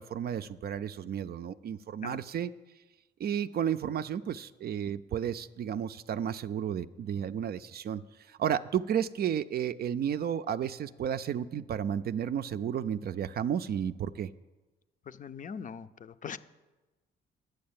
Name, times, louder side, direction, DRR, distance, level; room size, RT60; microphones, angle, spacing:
voice 1, 0.0-2.5 3.2-8.0 8.3-14.3, right 9 dB, 50° right, 13 dB, 0.4 m, -32 dB
voice 2, 15.1-16.4, left 6 dB, 40° left, 12 dB, 0.5 m, -41 dB
9.5 x 6.5 x 8.7 m, 1.2 s
cardioid pair, 90°, 20 cm